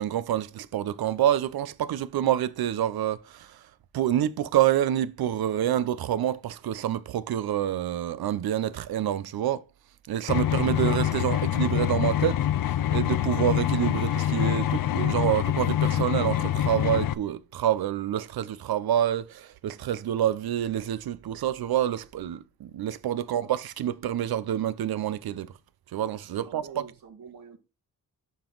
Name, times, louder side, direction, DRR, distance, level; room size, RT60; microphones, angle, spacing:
voice 1, 0.0-3.5 3.9-9.6 10.1-12.4 12.9-25.5 25.9-26.6, right 11 dB, 90° right, 0.6 m, -27 dB
sound 1, 10.3-17.1, left 11 dB, 70° left, 0.5 m, -25 dB
voice 2, 26.3-27.6, right 6 dB, 70° right, 1.6 m, -47 dB
11.5 x 4.0 x 3.9 m
wide cardioid pair, 130°, 36 cm